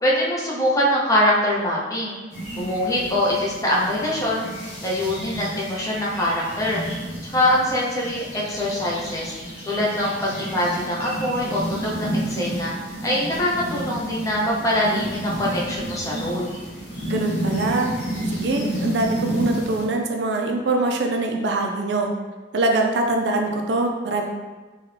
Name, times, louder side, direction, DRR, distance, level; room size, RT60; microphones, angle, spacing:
voice 1, 0.0-2.2 2.5-4.5 4.8-6.8 7.2-9.3 9.7-12.7 13.0-16.6, left 1 dB, 20° left, -5 dB, 0.6 m, -23 dB
sound 1, 2.3-19.9, right 1 dB, 50° left, 1.1 m, -31 dB
voice 2, 17.1-17.9 18.3-22.1 22.5-24.3, right 2 dB, 65° right, 2 dB, 0.4 m, -23 dB
3.5 x 2.3 x 3.2 m, 1.3 s
head